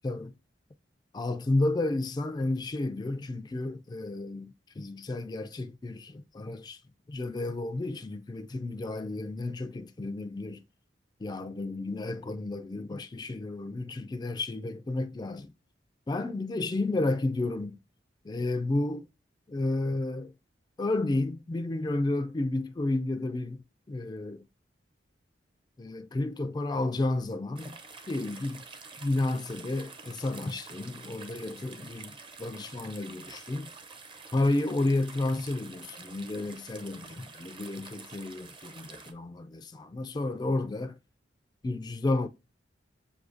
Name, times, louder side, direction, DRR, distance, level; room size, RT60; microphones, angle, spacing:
voice 1, 1.1-6.8 7.1-10.6 11.2-15.5 16.1-17.8 18.2-19.1 19.5-20.3 20.8-24.5 25.8-27.8 28.1-28.6 29.0-33.7 34.3-41.0 41.6-42.3, left 2 dB, 20° left, 0.3 m, -31 dB
sound 1, 27.6-39.1, right 4 dB, 30° right, 0.6 m, -48 dB
6.2 x 2.7 x 2.5 m
head